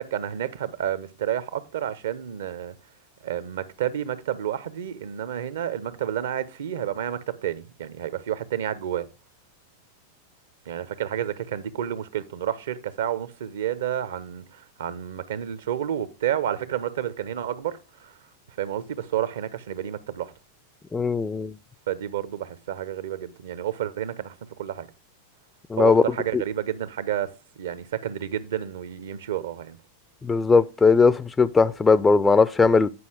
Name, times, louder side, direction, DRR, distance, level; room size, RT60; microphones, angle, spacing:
voice 1, 0.0-2.7 3.2-9.1 10.7-18.1 18.6-20.3 21.9-24.3 24.6-24.9 25.8-27.3 27.6-29.8, right 10 dB, 60° right, 0.7 m, -30 dB
voice 2, 20.9-21.5 25.7-26.0 26.3-26.4 30.2-32.9, left 4 dB, 15° left, 0.4 m, -19 dB
9.6 x 5.5 x 4.7 m
figure-of-eight pair, 90°, 0 cm